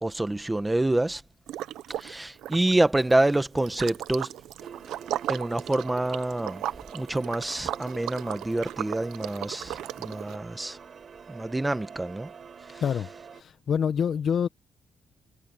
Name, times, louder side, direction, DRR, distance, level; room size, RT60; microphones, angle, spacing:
voice 1, 0.0-1.2 2.0-4.4 5.3-6.6 6.9-10.8 11.3-12.3 12.6-12.8, right 2 dB, 15° right, 1.5 m, -27 dB
Liquid, 1.5-2.1 2.4-10.4, right 13 dB, 85° right, 0.8 m, -36 dB
sound 1, 4.6-13.4, right 6 dB, 50° right, 3.9 m, -46 dB
voice 2, 12.7-13.1 13.3-14.5, left 7 dB, 55° left, 1.0 m, -26 dB
cardioid pair, 90°, 0 cm